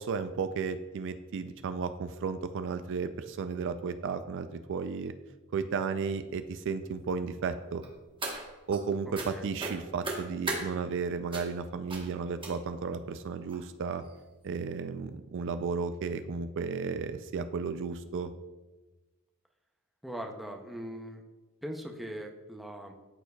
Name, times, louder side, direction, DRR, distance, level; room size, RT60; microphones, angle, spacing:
voice 1, 0.0-5.1 5.5-7.8 8.7-14.0 14.4-18.3, right 5 dB, 60° right, 10 dB, 0.4 m, -34 dB
sound 1, 7.8-8.8 9.1-9.3 9.6-10.6 11.3-11.6 11.9-12.1 12.4-12.8 13.5-13.6 14.0-14.2 14.5-14.6, right 2 dB, 25° right, 1.1 m, -36 dB
voice 2, 20.0-21.2 21.6-22.9, equal, ahead, 1 dB, 0.5 m, -40 dB
13.0 x 4.4 x 2.3 m, 1.2 s
head